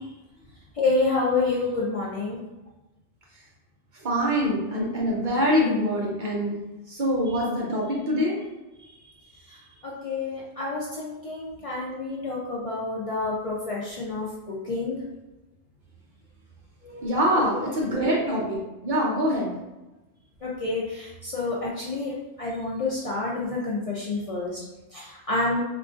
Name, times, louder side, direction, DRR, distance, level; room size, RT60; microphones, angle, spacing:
voice 1, 0.7-2.4 7.3-7.4 8.8-9.0 9.4-15.0 16.8-18.2 20.4-24.6 24.9-25.6, left 3 dB, 60° left, -5 dB, 0.3 m, -29 dB
voice 2, 4.0-6.6 6.9-8.4 17.0-19.5, equal, 50° right, -3 dB, 0.7 m, -24 dB
3.8 x 2.4 x 2.4 m, 1.0 s
omnidirectional pair, 1.2 m